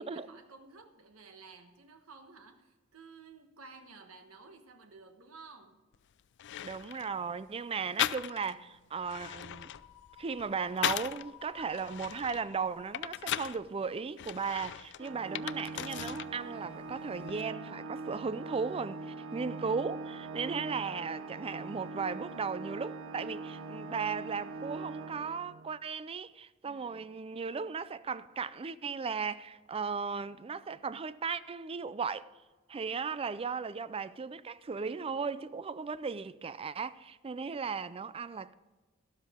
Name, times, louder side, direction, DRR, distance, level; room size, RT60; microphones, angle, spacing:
voice 1, 0.0-5.8 26.6-27.1, right 4 dB, 90° right, 1.2 m, -53 dB
sound 1, 5.9-6.0 6.4-7.1 8.0-8.6 9.0-11.3 11.7-13.6 14.2-16.3 16.6-17.4, left 12 dB, 60° left, 0.4 m, -37 dB
voice 2, 6.6-9.7 10.2-32.3 32.7-38.5, right 5 dB, 25° right, 0.4 m, -36 dB
sound 2, 8.9-14.0, left 11 dB, 80° left, 1.0 m, -55 dB
Organ, 15.0-25.8, right 3 dB, 65° right, 0.7 m, -42 dB
12.5 x 12.0 x 3.6 m
head